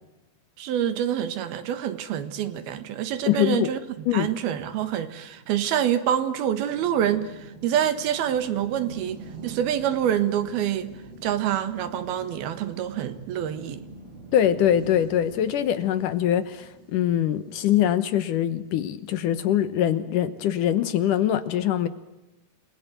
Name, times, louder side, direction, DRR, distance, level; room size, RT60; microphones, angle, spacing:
voice 1, 0.6-10.9 11.2-13.8, right 10 dB, 80° right, 12 dB, 3.4 m, -26 dB
voice 2, 3.3-3.7 4.1-4.3 14.3-21.9, left 10 dB, 70° left, 13 dB, 2.3 m, -23 dB
sound 1, 3.4-18.9, right 3 dB, 45° right, 6.0 m, -46 dB
29.0 x 20.5 x 9.2 m, 0.98 s
omnidirectional pair, 4.3 m